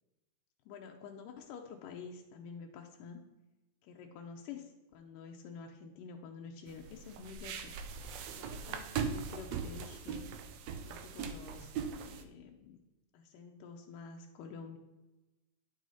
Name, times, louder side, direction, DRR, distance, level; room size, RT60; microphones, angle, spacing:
voice 1, 0.7-3.3 3.8-7.7 8.3-10.3 10.9-12.8 13.1-14.8, left 5 dB, 85° left, 2 dB, 2.4 m, -49 dB
sound 1, 6.7-12.2, right 6 dB, 85° right, 1.5 m, -40 dB
9.9 x 6.3 x 4.1 m, 1.0 s
omnidirectional pair, 3.8 m